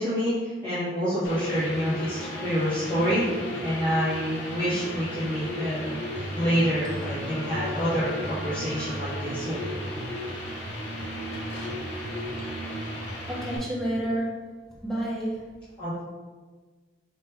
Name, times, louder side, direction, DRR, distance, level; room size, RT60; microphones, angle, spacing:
voice 1, 0.0-3.2 3.6-6.0 6.3-9.6 15.8-16.0, equal, 25° left, -15 dB, 1.2 m, -27 dB
sound 1, 1.2-13.6, equal, 65° left, 0.8 m, -35 dB
sound 2, 1.9-9.2, left 1 dB, 90° left, 1.1 m, -43 dB
sound 3, 6.1-13.7, right 1 dB, 45° right, 0.3 m, -39 dB
voice 2, 13.3-14.4 14.8-15.4, right 1 dB, ahead, -9 dB, 1.1 m, -29 dB
4.5 x 2.5 x 3.4 m, 1.4 s
head